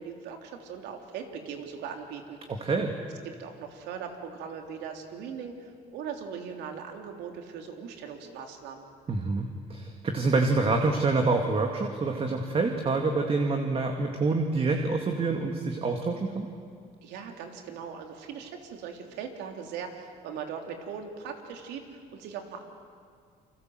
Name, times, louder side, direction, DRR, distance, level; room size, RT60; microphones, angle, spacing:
voice 1, 0.0-2.4 3.2-8.8 17.0-22.6, right 7 dB, 90° right, 4 dB, 3.3 m, -40 dB
voice 2, 2.6-2.9 9.1-16.5, right 3 dB, 35° right, 3 dB, 2.4 m, -27 dB
29.5 x 24.5 x 7.9 m, 2.1 s
cardioid pair, 110°, 17 cm